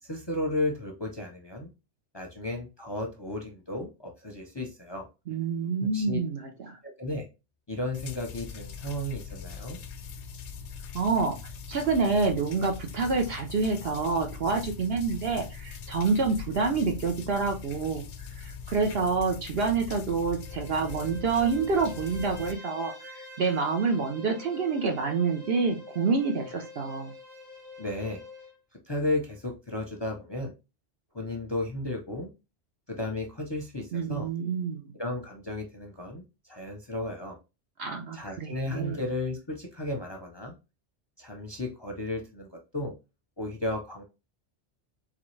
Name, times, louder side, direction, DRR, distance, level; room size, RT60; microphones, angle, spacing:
voice 1, 0.0-1.7 2.1-5.1 5.9-6.2 7.0-7.2 7.7-9.8 27.8-28.2 28.9-30.5 31.1-32.3 32.9-34.3 35.0-37.4 38.1-40.5 41.2-42.9 43.4-44.0, left 1 dB, 25° left, 2 dB, 0.7 m, -34 dB
voice 2, 5.3-6.8 10.9-11.4 11.7-18.0 18.4-27.1 33.9-34.9 37.8-39.0, right 4 dB, 60° right, 3 dB, 1.0 m, -27 dB
sound 1, 7.9-22.5, left 6 dB, 85° left, 1.0 m, -41 dB
Bowed string instrument, 20.3-28.6, left 3 dB, 35° right, 1.2 m, -46 dB
4.0 x 3.5 x 3.2 m, 0.28 s
omnidirectional pair, 1.2 m